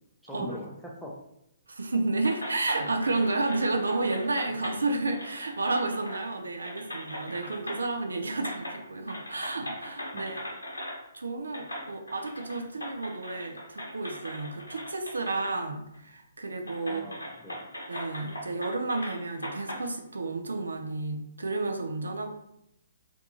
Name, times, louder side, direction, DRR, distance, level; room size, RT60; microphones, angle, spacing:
voice 1, 0.2-1.1 4.5-4.7 8.3-8.5 10.1-10.3 16.8-17.6, left 1 dB, ahead, -3 dB, 0.4 m, -42 dB
voice 2, 1.7-17.0 17.9-22.3, right 2 dB, 70° right, 5 dB, 0.3 m, -31 dB
sound 1, 2.2-4.8 5.1-6.3 6.6-8.0 8.4-8.8 9.1-11.0 11.5-15.6 15.9-16.0 16.7-19.8, equal, 80° left, 0.9 m, -39 dB
2.5 x 2.3 x 2.8 m, 0.80 s
figure-of-eight pair, 130°, 0 cm